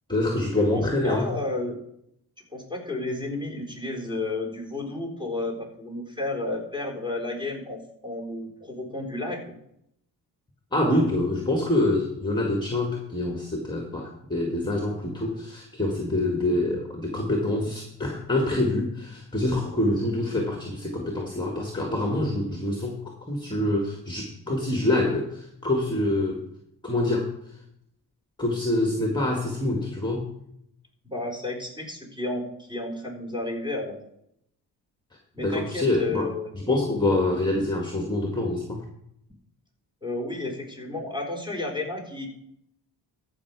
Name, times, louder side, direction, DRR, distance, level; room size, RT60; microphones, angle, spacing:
voice 1, 0.1-1.3 10.7-26.4 26.8-27.3 28.4-30.2 35.4-36.3 36.7-38.8, left 1 dB, 10° left, 1 dB, 1.9 m, -26 dB
voice 2, 0.7-1.8 2.5-9.5 31.0-34.0 35.3-36.5 40.0-42.3, left 2 dB, 10° right, 0 dB, 4.0 m, -32 dB
14.5 x 5.9 x 4.8 m, 0.75 s
cardioid pair, 75°, 42 cm